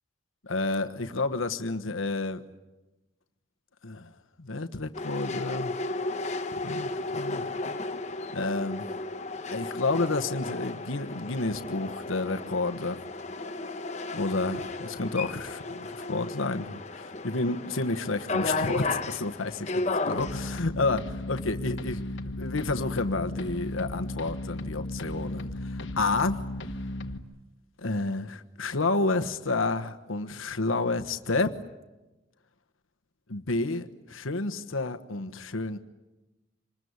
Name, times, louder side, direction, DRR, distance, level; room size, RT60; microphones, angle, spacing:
voice 1, 0.4-2.4 3.8-4.1 4.4-5.7 6.5-7.8 8.3-9.0 9.5-13.0 14.1-19.7 20.1-26.4 27.8-31.6 33.3-35.8, left 3 dB, 90° left, 8 dB, 1.2 m, -30 dB
sound 1, 4.9-20.6, left 2 dB, 35° left, 1.0 m, -34 dB
sound 2, 20.2-27.2, left 1 dB, 70° left, 1.4 m, -35 dB
26.5 x 20.5 x 9.6 m, 1.1 s
head